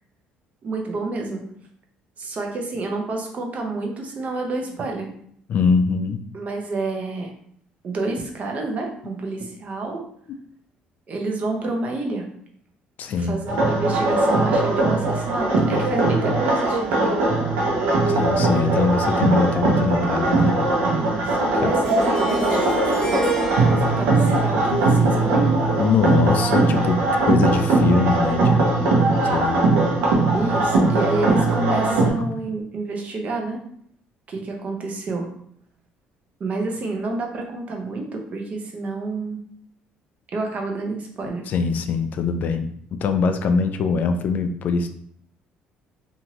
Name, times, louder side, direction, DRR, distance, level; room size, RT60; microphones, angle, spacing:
voice 1, 0.6-1.4 2.2-5.1 6.3-7.3 7.8-10.0 11.1-12.2 13.2-17.2 21.0-25.5 30.3-33.6 34.3-35.3 36.4-39.4 40.3-41.4, right 2 dB, 45° right, 2 dB, 0.8 m, -29 dB
voice 2, 5.5-6.2 13.0-13.3 18.1-20.6 21.6-21.7 24.6-24.9 25.8-28.9 29.2-29.6 32.2-32.3 41.4-44.9, left 5 dB, 55° left, 8 dB, 0.3 m, -22 dB
sound 1, 13.5-32.1, right 2 dB, 85° right, 0.8 m, -20 dB
Harp, 21.8-26.8, right 2 dB, 15° left, 1.0 m, -31 dB
2.8 x 2.5 x 2.9 m, 0.64 s
cardioid pair, 95°, 3 cm